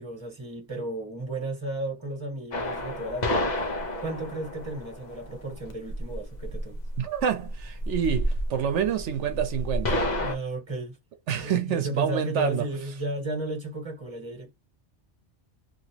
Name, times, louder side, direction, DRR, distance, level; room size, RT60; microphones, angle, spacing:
voice 1, 0.0-3.7 4.0-6.8 10.1-11.0 11.4-14.5, right 1 dB, 25° right, 1.7 m, -34 dB
sound 1, 2.5-10.4, left 1 dB, 45° left, 0.8 m, -31 dB
voice 2, 7.0-10.1 11.3-12.6, right 8 dB, 80° right, 1.0 m, -27 dB
3.0 x 2.9 x 2.8 m
omnidirectional pair, 1.2 m